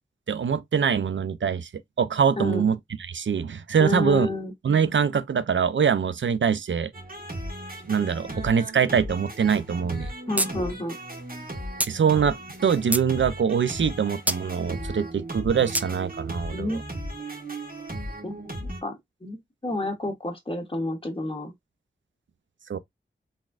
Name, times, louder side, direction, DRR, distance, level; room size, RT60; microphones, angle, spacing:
voice 1, 0.3-1.7 2.0-4.3 4.6-6.9 7.9-10.1 11.8-12.4 12.6-16.8 22.7-22.8, right 7 dB, 75° right, 0.4 m, -23 dB
voice 2, 2.4-2.7 3.8-4.5 10.3-10.9 16.5-16.8 18.2-19.0 19.2-19.4 19.6-21.5, left 1 dB, 30° left, 1.3 m, -30 dB
sound 1, 6.9-18.8, right 1 dB, 45° right, 1.7 m, -36 dB
sound 2, 10.4-10.5 10.8-10.9 11.8-11.9 12.5-13.1 14.3-14.4 15.7-15.9, right 1 dB, 10° right, 0.3 m, -25 dB
4.0 x 3.6 x 2.3 m
wide cardioid pair, 70°, 20 cm